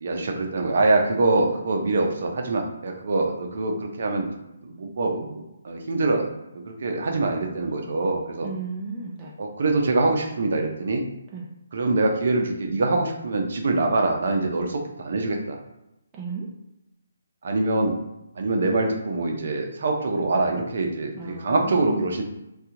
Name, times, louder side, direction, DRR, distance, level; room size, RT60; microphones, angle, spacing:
voice 1, 0.0-4.3 4.6-6.3 6.5-8.5 9.4-11.0 11.7-15.6 17.4-18.0 18.4-22.2, right 2 dB, 60° right, 2 dB, 0.7 m, -24 dB
voice 2, 8.4-9.3 11.3-11.5 16.1-16.5 21.2-22.1, right 3 dB, 20° right, -4 dB, 0.5 m, -33 dB
2.8 x 2.4 x 3.7 m, 0.89 s
hypercardioid pair, 155°, 0 cm